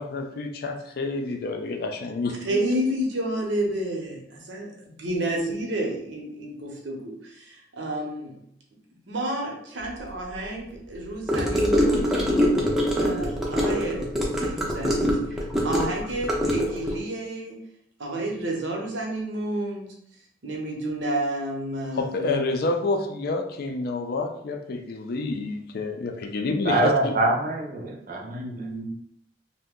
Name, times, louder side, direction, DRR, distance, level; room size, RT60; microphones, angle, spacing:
voice 1, 0.0-2.6 21.9-27.1, left 3 dB, 55° left, 5 dB, 0.4 m, -28 dB
voice 2, 2.4-8.4 9.1-12.2 12.9-14.1 14.4-17.6 18.0-19.9 20.4-22.4 28.3-28.9, right 1 dB, 85° right, 0 dB, 0.8 m, -30 dB
Gurgling / Car passing by / Sink (filling or washing), 11.3-17.0, equal, ahead, 0.5 m, -24 dB
voice 3, 26.6-28.6, right 2 dB, 45° right, 0 dB, 0.6 m, -24 dB
2.7 x 2.1 x 3.6 m, 0.70 s
head